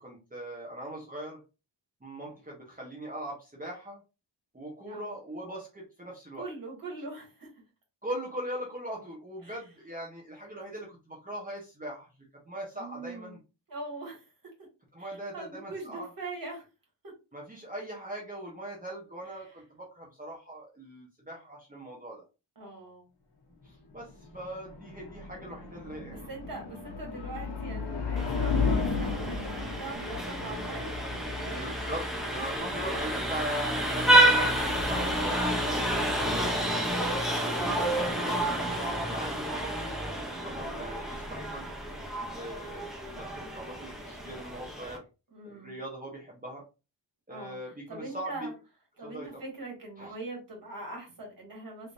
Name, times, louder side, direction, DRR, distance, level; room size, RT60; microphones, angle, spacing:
voice 1, 0.0-1.4 2.0-4.0 4.5-6.4 8.0-12.1 12.4-13.4 14.9-16.1 17.3-22.2 23.6-26.3 31.0-31.1 31.4-36.1 37.4-41.7 42.3-45.0 45.5-46.6 47.3-48.5 49.0-49.4 50.0-50.1, right 1 dB, 20° right, -2 dB, 1.1 m, -40 dB
voice 2, 6.4-7.5 9.4-9.6 12.7-13.3 13.7-14.3 15.0-16.6 17.0-17.1 22.6-23.1 26.1-31.7 32.5-32.6 36.2-36.9 37.6-37.9 45.3-45.8 47.3-47.6 47.9-48.5 49.0-51.9, right 2 dB, 50° right, 0 dB, 2.1 m, -42 dB
sound 1, 24.0-33.0, left 5 dB, 60° left, 1.1 m, -34 dB
Vehicle horn car horn honking, 28.2-45.0, right 1 dB, ahead, 0.6 m, -29 dB
3.9 x 3.4 x 2.6 m, 0.29 s
wide cardioid pair, 155°, 45 cm